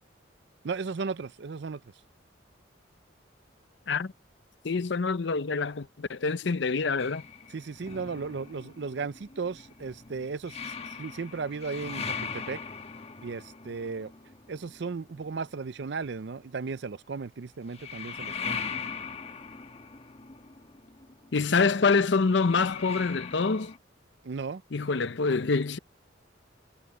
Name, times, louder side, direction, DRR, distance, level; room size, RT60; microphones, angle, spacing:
voice 1, 0.6-1.8 7.5-10.7 11.0-12.6 13.2-14.1 14.5-18.7 24.2-24.6, right 4 dB, 60° right, 0.5 m, -35 dB
voice 2, 4.6-7.2 21.3-23.7 24.7-25.8, left 4 dB, 65° left, 0.6 m, -26 dB
sound 1, 7.0-15.5 17.6-23.8, left 6 dB, 30° left, 1.3 m, -40 dB
head